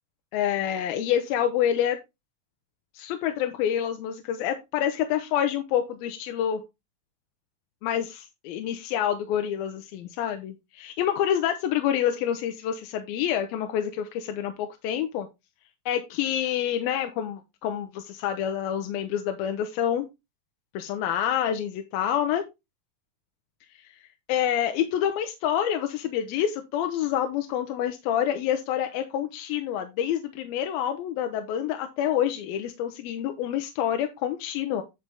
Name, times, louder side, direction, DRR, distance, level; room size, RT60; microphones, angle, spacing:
voice 1, 0.3-2.0 2.9-6.6 7.8-15.3 15.9-20.1 20.7-22.4 23.8-23.9 24.3-34.8, left 10 dB, 85° left, 6 dB, 2.6 m, -27 dB
9.9 x 5.4 x 3.4 m, 0.23 s
omnidirectional pair, 4.3 m